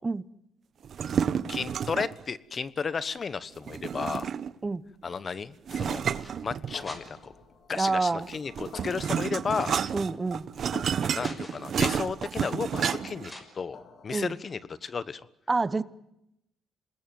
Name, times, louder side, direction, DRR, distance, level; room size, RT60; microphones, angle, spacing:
sound 1, 0.8-2.2 3.7-4.7 5.7-7.1 8.2-13.3, right 7 dB, 55° right, 1.0 m, -30 dB
voice 1, 1.5-4.3 5.0-6.0 6.4-7.3 7.7-9.8 11.1-15.2, left 5 dB, 40° left, 16 dB, 1.1 m, -33 dB
sound 2, 3.7-4.5 5.4-7.5 8.2-10.4 10.8-11.9 13.2-13.4, left 1 dB, 15° left, 6.2 m, -49 dB
sound 3, 6.7-14.5, left 6 dB, 60° left, 4.0 m, -49 dB
voice 2, 7.7-8.3 9.9-10.4 14.1-14.4 15.5-15.8, right 3 dB, 25° right, 17 dB, 1.0 m, -27 dB
27.5 x 20.5 x 9.5 m, 0.84 s
cardioid pair, 90°, 0 cm